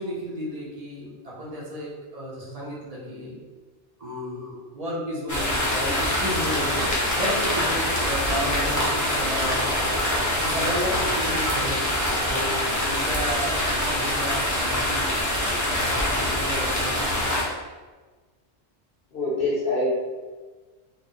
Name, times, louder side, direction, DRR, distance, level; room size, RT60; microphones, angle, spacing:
voice 1, 0.0-3.3 4.0-6.9 7.1-11.8 12.1-17.3, equal, 40° right, -5 dB, 0.8 m, -33 dB
sound 1, 5.3-17.4, left 1 dB, 20° left, 0.5 m, -24 dB
voice 2, 19.1-19.9, left 2 dB, 60° left, -5 dB, 0.8 m, -25 dB
2.6 x 2.1 x 3.8 m, 1.3 s
omnidirectional pair, 1.2 m